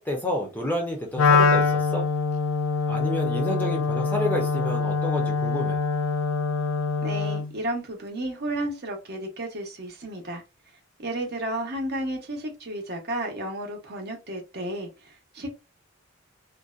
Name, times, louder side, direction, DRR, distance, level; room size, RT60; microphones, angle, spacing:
voice 1, 0.0-2.1 2.9-5.8, left 1 dB, 10° left, 0.5 m, -29 dB
Wind instrument woodwind instrument, 1.2-7.5, left 4 dB, 75° left, 0.4 m, -24 dB
voice 2, 7.0-10.4 11.0-15.5, right 1 dB, 50° right, 0.8 m, -32 dB
2.6 x 2.1 x 2.4 m
head